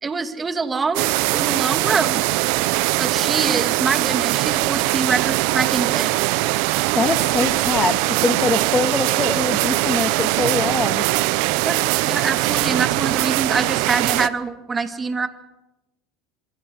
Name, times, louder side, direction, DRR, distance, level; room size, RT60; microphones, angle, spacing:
voice 1, 0.0-2.3 3.0-6.1 11.6-15.3, right 4 dB, 25° right, 9 dB, 2.1 m, -25 dB
sound 1, 0.9-14.3, right 20 dB, 70° right, 0.7 m, -21 dB
voice 2, 7.0-11.0, left 3 dB, 20° left, 9 dB, 2.0 m, -23 dB
25.5 x 22.5 x 5.6 m, 0.97 s
supercardioid pair, 95°, 0 cm